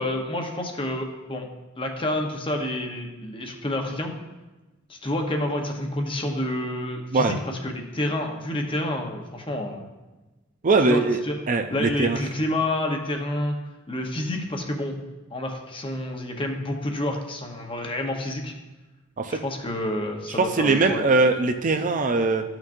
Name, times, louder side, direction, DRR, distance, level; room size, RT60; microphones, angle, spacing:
voice 1, 0.0-1.5 1.8-4.1 4.9-9.9 10.8-11.4 11.7-13.5 13.9-15.0 15.3-18.5 19.3-21.0, left 1 dB, 25° left, 3 dB, 0.9 m, -29 dB
voice 2, 10.6-11.2 11.5-12.2 19.2-19.4 20.4-22.4, right 3 dB, 40° right, 6 dB, 0.5 m, -21 dB
13.0 x 5.9 x 2.6 m, 1.1 s
head